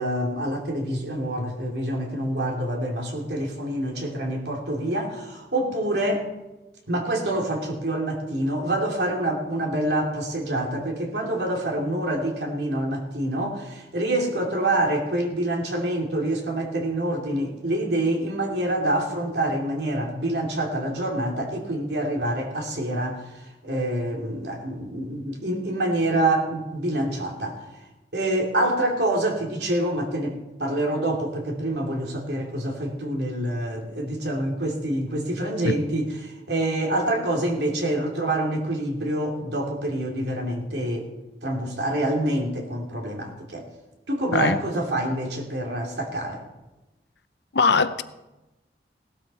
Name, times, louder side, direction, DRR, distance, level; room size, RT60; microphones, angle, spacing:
voice 1, 0.0-6.3 6.9-23.2 23.6-27.6 28.1-41.1 41.4-43.7 44.1-46.4, right 1 dB, 75° right, 2.8 m, -26 dB
voice 2, 47.5-48.0, left 4 dB, 75° left, 0.7 m, -21 dB
17.0 x 12.5 x 4.3 m
head